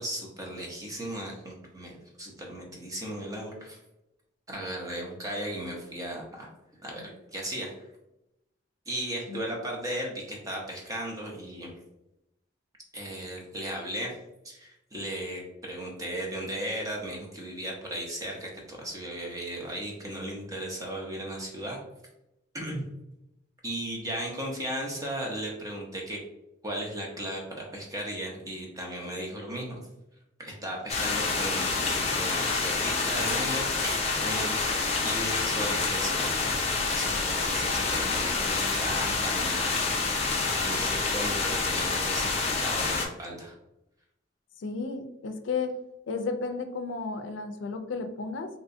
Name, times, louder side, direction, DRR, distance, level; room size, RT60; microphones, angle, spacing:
voice 1, 0.0-1.9 2.2-3.8 4.5-6.5 6.8-7.7 8.9-11.7 12.9-14.2 14.4-21.8 22.5-22.8 23.6-26.2 26.6-29.8 30.4-34.6 35.0-36.3 36.6-39.8 40.6-43.5, right 1 dB, 20° right, -1 dB, 0.7 m, -36 dB
sound 1, 30.9-43.1, left 4 dB, 35° left, 0.6 m, -27 dB
voice 2, 44.6-45.8 46.1-48.5, left 4 dB, 85° left, 7 dB, 0.4 m, -33 dB
3.3 x 2.9 x 2.6 m, 0.88 s
head